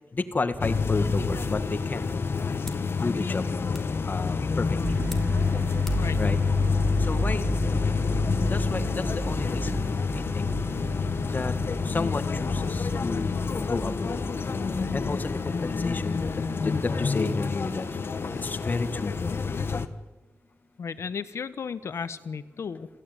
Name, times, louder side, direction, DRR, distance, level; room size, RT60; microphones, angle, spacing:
voice 1, 0.3-2.0 3.0-3.4 4.1-4.9 6.2-6.4 7.1-7.4 8.5-9.7 10.2-10.4 11.3-11.5 11.9-13.3 13.7-14.1 14.9-16.2 16.6-17.9 18.4-19.3, left 3 dB, 40° left, 10 dB, 1.8 m, -31 dB
sound 1, 0.6-19.9, left 5 dB, 55° left, 1.4 m, -28 dB
sound 2, 1.3-6.8, left 1 dB, 5° left, 2.7 m, -48 dB
sound 3, 4.8-16.4, right 1 dB, 30° right, 1.3 m, -34 dB
voice 2, 20.8-22.9, left 6 dB, 80° left, 13 dB, 1.3 m, -34 dB
28.0 x 16.0 x 9.2 m, 1.1 s
wide cardioid pair, 100°, 5 cm